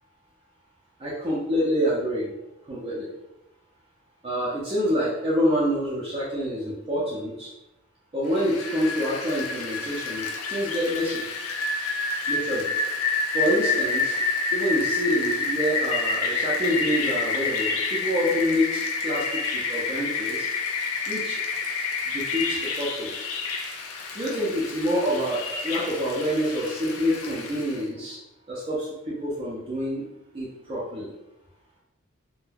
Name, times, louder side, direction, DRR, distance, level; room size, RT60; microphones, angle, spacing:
voice 1, 1.0-2.3 2.6-3.1 4.2-7.5 8.1-11.2 12.3-12.7 13.3-14.2 14.5-20.5 21.1-21.4 22.1-23.3 24.1-28.2 28.5-30.1 30.3-31.1, equal, 25° right, -7 dB, 0.5 m, -27 dB
Rain, 8.3-27.8, left 4 dB, 85° left, 0.4 m, -28 dB
2.2 x 2.2 x 3.2 m, 0.94 s
head